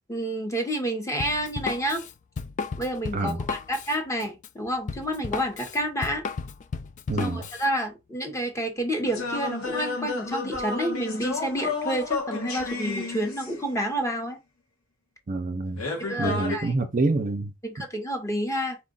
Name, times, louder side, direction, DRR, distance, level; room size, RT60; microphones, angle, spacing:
voice 1, 0.1-2.0 2.8-6.2 7.2-14.4 16.1-16.7 17.6-18.8, equal, 15° left, 1.0 m, -29 dB
Drum kit, 1.2-7.7, left 5 dB, 35° left, 0.3 m, -34 dB
voice 2, 7.1-7.4 15.3-15.8 16.2-17.5, right 2 dB, 40° right, 0.5 m, -26 dB
sound 1, 9.1-13.8 15.8-16.6, left 3 dB, 85° left, 1.4 m, -31 dB
4.5 x 2.5 x 3.8 m
head